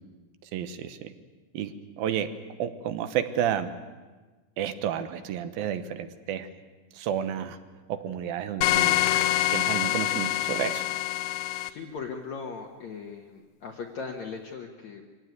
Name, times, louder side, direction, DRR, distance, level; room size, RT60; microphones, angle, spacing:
voice 1, 0.5-1.1 1.5-1.7 2.0-2.3 2.6-3.7 4.6-6.5 6.9-7.6 7.9-9.0 9.5-10.8, right 9 dB, 75° right, 10 dB, 2.8 m, -31 dB
sound 1, 8.6-11.7, left 14 dB, 85° left, 2.9 m, -25 dB
voice 2, 11.7-15.1, left 5 dB, 60° left, 1 dB, 2.1 m, -38 dB
24.0 x 17.0 x 9.5 m, 1.3 s
omnidirectional pair, 4.5 m